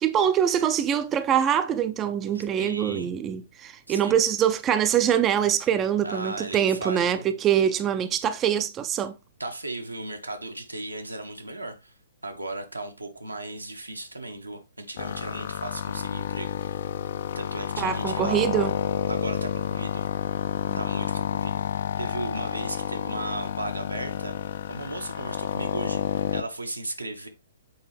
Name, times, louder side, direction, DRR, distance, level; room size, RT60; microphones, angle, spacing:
voice 1, 0.0-9.1 17.8-18.7 20.7-20.8, right 9 dB, 20° right, 0.4 m, -24 dB
voice 2, 2.3-3.1 3.9-4.2 6.0-7.2 9.4-11.9 12.2-16.8 17.3-18.4 19.1-20.0 20.7-24.3 24.7-27.3, right 2 dB, 85° right, 1.1 m, -36 dB
sound 1, 15.0-26.4, left 9 dB, 50° left, 0.4 m, -30 dB
6.9 x 4.6 x 3.2 m
figure-of-eight pair, 120°, 0 cm